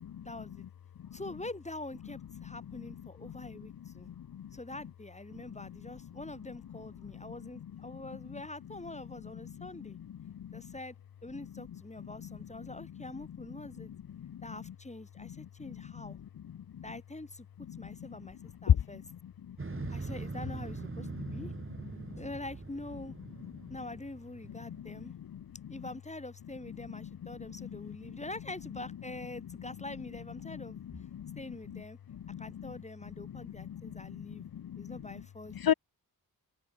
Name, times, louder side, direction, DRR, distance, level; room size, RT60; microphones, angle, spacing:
voice 1, 0.2-0.7 1.1-4.1 4.5-10.0 10.5-11.0 11.2-13.9 14.4-16.2 16.8-17.5 17.8-19.0 19.9-21.5 22.1-23.2 23.7-25.2 25.7-30.8 31.4-32.0 32.4-34.5 34.8-35.6, left 2 dB, 15° left, 4.3 m, -45 dB
voice 2, 12.0-12.3 13.8-13.9 14.7-14.8 15.2-15.3 15.7-15.8 17.7-17.8 18.7-18.8 21.4-21.5 24.7-25.1 25.3-25.4 26.9-27.1 27.6-27.8 28.1-28.2 30.4-31.4 31.7-31.8 32.3-32.7 33.3-33.8 34.1-35.2 35.5-35.7, left 9 dB, 65° left, 0.9 m, -34 dB
Motorcycle, 19.6-24.8, right 3 dB, 30° right, 5.3 m, -42 dB
cardioid pair, 70°, 38 cm